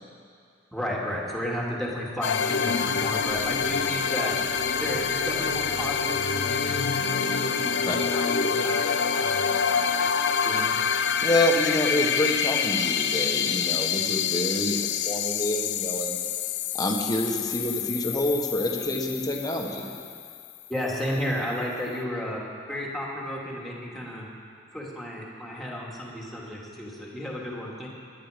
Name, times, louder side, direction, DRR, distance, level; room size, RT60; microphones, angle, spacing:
voice 1, 0.7-4.3 4.8-8.8 9.1-10.7 20.7-22.4 22.7-24.3 24.7-27.9, equal, ahead, -4 dB, 2.4 m, -33 dB
sound 1, 2.2-20.7, left 6 dB, 65° left, 0.6 m, -27 dB
voice 2, 11.2-16.2 16.7-19.9, left 1 dB, 20° left, 0 dB, 1.5 m, -27 dB
20.5 x 10.5 x 5.2 m, 2.3 s
head